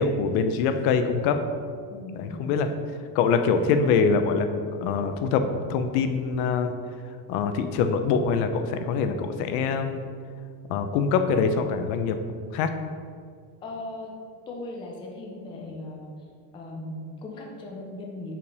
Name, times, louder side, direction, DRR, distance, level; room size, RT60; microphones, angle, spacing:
voice 1, 0.0-1.4 2.2-2.7 3.1-4.5 4.8-6.7 7.3-10.0 10.7-12.2 12.5-12.7, left 5 dB, 80° left, 8 dB, 0.8 m, -24 dB
voice 2, 1.9-2.5 13.6-14.1 14.5-16.3 16.5-18.3, left 2 dB, 10° left, 0 dB, 0.4 m, -38 dB
5.8 x 4.8 x 5.3 m, 2.1 s
cardioid pair, 175°, 45 cm